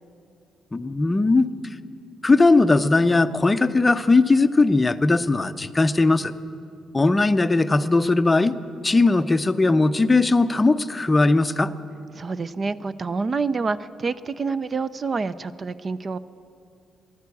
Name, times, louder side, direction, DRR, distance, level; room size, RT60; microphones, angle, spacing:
voice 1, 0.7-1.5 2.2-6.3 6.9-8.5 8.8-11.7, left 3 dB, 20° left, 12 dB, 0.5 m, -19 dB
voice 2, 12.1-16.2, right 4 dB, 35° right, 15 dB, 0.4 m, -27 dB
15.0 x 11.5 x 8.3 m, 2.5 s
cardioid pair, 90°, 0 cm